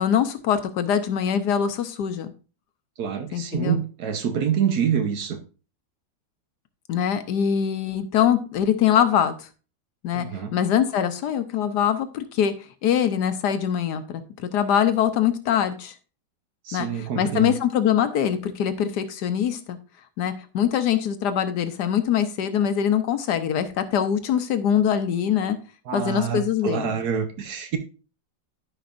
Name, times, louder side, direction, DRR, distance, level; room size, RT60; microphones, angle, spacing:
voice 1, 0.0-2.3 3.3-3.8 6.9-9.5 10.0-10.3 10.5-12.5 12.8-15.9 16.7-19.8 20.2-25.6 25.9-26.9, left 9 dB, 70° left, 10 dB, 1.3 m, -23 dB
voice 2, 3.0-5.4 10.1-10.5 16.6-17.6 25.9-27.8, right 8 dB, 65° right, 6 dB, 1.3 m, -26 dB
13.0 x 5.2 x 2.5 m, 0.35 s
omnidirectional pair, 1.9 m